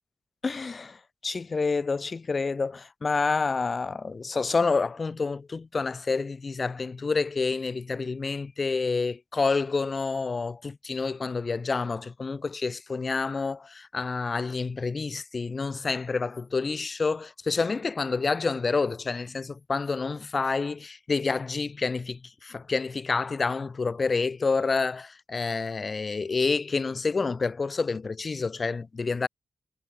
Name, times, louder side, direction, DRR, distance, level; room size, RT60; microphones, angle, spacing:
voice 1, 0.4-0.9 1.2-29.3, left 4 dB, 40° left, 0.4 m, -28 dB
wide cardioid pair, 110°, 0 cm